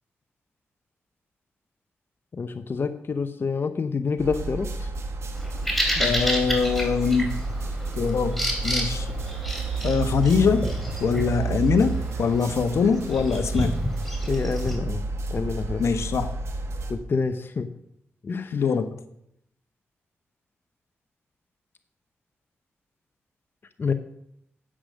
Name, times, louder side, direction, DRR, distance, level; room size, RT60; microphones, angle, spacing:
voice 1, 2.3-4.9 6.0-6.2 14.2-15.0 15.3-15.8 16.9-17.7 18.2-18.6 23.8-23.9, left 4 dB, 50° left, 9 dB, 0.8 m, -28 dB
sound 1, 4.2-16.9, right 3 dB, 70° right, 1.6 m, -31 dB
Bird vocalization bird call bird song, 5.4-14.8, equal, 5° left, 3.0 m, -31 dB
voice 2, 6.0-7.4 8.0-9.1 9.8-10.7 11.0-13.7 15.8-16.3 18.5-18.9, left 5 dB, 75° left, 10 dB, 1.0 m, -23 dB
9.9 x 7.9 x 6.3 m, 0.76 s
cardioid pair, 70°, 5 cm